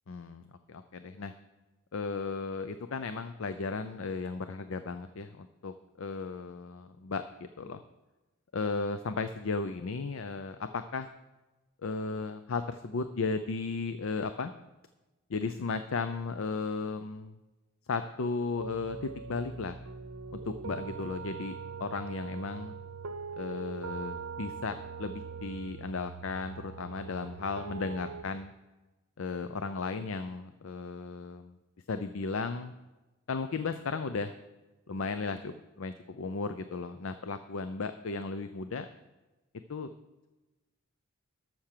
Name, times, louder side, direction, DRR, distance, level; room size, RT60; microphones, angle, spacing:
voice 1, 0.1-1.3 1.9-7.8 8.5-11.1 11.8-14.5 15.3-17.4 17.9-19.8 20.3-22.7 23.4-28.5 29.2-31.6 31.9-32.7 33.3-34.3 34.9-38.9 39.7-39.9, left 4 dB, 70° left, 10 dB, 0.6 m, -35 dB
sound 1, 18.6-28.2, right 5 dB, 85° right, 0.7 m, -42 dB
13.0 x 5.9 x 6.7 m, 1.1 s
head